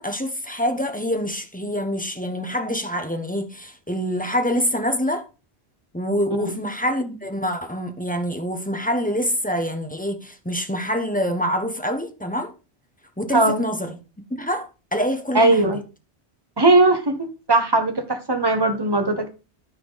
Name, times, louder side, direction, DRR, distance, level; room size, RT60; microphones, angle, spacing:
voice 1, 0.0-5.3 5.9-12.5 13.2-14.0 14.3-15.7, equal, 10° left, 1.1 m, -26 dB
voice 2, 13.3-13.6 15.3-15.8 16.6-19.3, right 2 dB, 20° right, 1.3 m, -19 dB
13.0 x 4.6 x 4.1 m
omnidirectional pair, 1.2 m